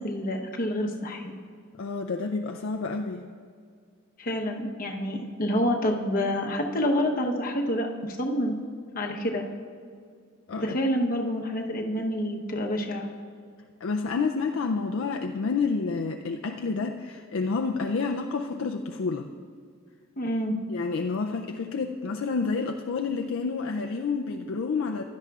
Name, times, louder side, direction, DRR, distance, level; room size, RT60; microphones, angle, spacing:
voice 1, 0.0-1.3 4.2-8.6 8.9-9.5 10.6-13.1 20.2-20.6, equal, 40° left, 1 dB, 0.9 m, -28 dB
voice 2, 1.8-3.2 10.5-10.8 13.8-19.3 20.7-25.0, left 4 dB, 60° left, 3 dB, 0.4 m, -29 dB
16.0 x 11.5 x 2.4 m, 2.1 s
head